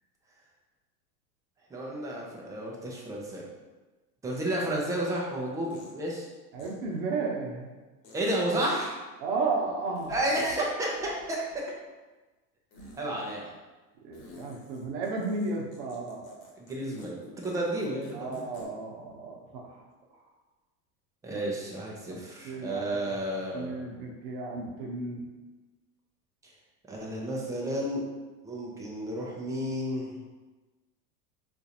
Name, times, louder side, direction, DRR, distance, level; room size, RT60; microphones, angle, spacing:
voice 1, 1.7-3.5 4.2-6.3 8.1-9.0 10.1-11.6 12.9-13.5 16.6-17.2 17.4-18.4 21.2-23.8 26.4-26.5 26.9-28.0 28.4-30.2, right 1 dB, 10° right, -3 dB, 0.4 m, -31 dB
sound 1, 5.7-6.0 6.6-6.7 8.0-8.4 10.0-10.6 10.9-11.8 12.7-13.0 14.1-16.7 17.0-17.1 17.4-17.5 17.8-18.7, left 2 dB, 55° left, 1.1 m, -51 dB
voice 2, 6.5-7.7 9.2-10.1 14.0-16.3 18.1-19.7 22.1-22.2 22.4-22.8 23.5-25.2, right 3 dB, 50° right, 0 dB, 0.9 m, -33 dB
3.8 x 2.5 x 2.8 m, 1.2 s
hypercardioid pair, 110°, 47 cm